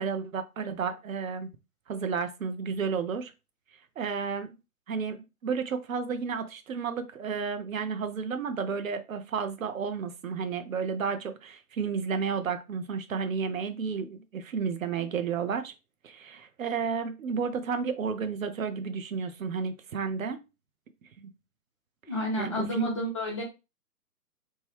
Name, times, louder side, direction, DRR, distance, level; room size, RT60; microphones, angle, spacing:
voice 1, 0.0-1.5 1.9-3.3 4.0-4.6 4.9-15.7 16.0-20.4 22.3-22.9, right 5 dB, 60° right, 0.6 m, -32 dB
voice 2, 22.1-23.4, left 1 dB, 20° left, 0.6 m, -31 dB
3.1 x 2.2 x 3.2 m
figure-of-eight pair, 135°, 46 cm